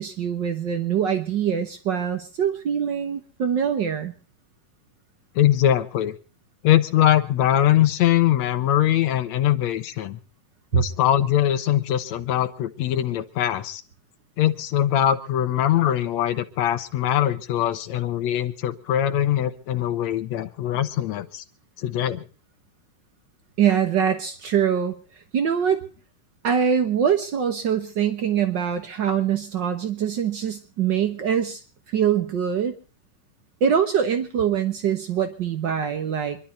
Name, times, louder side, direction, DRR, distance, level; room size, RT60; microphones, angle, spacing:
voice 1, 0.0-4.1 10.7-10.8 23.6-24.9 25.3-25.8 26.4-31.6 31.9-32.7 33.6-36.4, right 8 dB, 85° right, 8 dB, 1.0 m, -23 dB
voice 2, 5.4-6.2 6.6-10.2 10.7-13.8 14.4-21.4 21.8-22.2, left 11 dB, 65° left, 10 dB, 2.0 m, -22 dB
26.0 x 11.5 x 4.3 m, 0.38 s
omnidirectional pair, 3.9 m